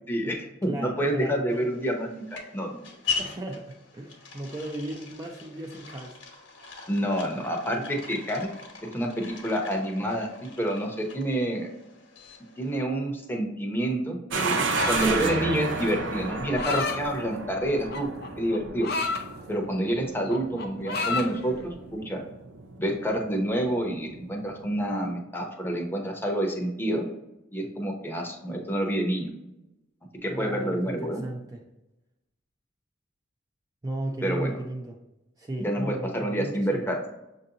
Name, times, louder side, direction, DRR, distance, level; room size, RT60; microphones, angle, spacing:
voice 1, 0.1-2.2 2.5-2.8 6.9-8.5 8.8-11.7 12.6-18.1 18.4-18.9 19.5-22.2 22.8-27.1 27.5-29.3 30.2-31.2 34.2-34.5 35.6-37.1, right 1 dB, 10° left, 1 dB, 0.7 m, -28 dB
voice 2, 0.7-1.7 3.2-6.2 30.3-31.6 33.8-35.0 35.4-36.9, right 1 dB, 20° right, 0 dB, 0.4 m, -35 dB
sound 1, 1.5-12.7, left 5 dB, 80° left, 1.0 m, -40 dB
sound 2, 14.3-25.1, right 3 dB, 80° right, 0.5 m, -33 dB
sound 3, 14.7-15.3 16.3-17.0 17.9-19.2 19.7-20.0 20.3-21.3, left 4 dB, 55° left, 0.5 m, -30 dB
6.3 x 2.6 x 2.8 m, 0.94 s
head